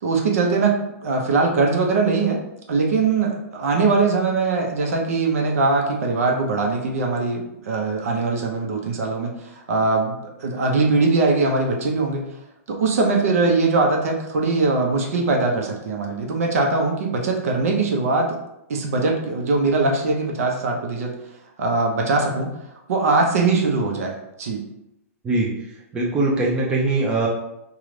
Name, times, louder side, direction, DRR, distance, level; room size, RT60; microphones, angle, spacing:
voice 1, 0.0-2.4 2.7-12.2 12.7-18.4 18.7-21.1 21.6-22.5 22.9-24.6, right 3 dB, 70° right, 1 dB, 0.8 m, -21 dB
voice 2, 25.9-27.3, right 2 dB, 10° right, -3 dB, 0.4 m, -21 dB
3.8 x 2.4 x 3.2 m, 0.86 s
hypercardioid pair, 160°, 8 cm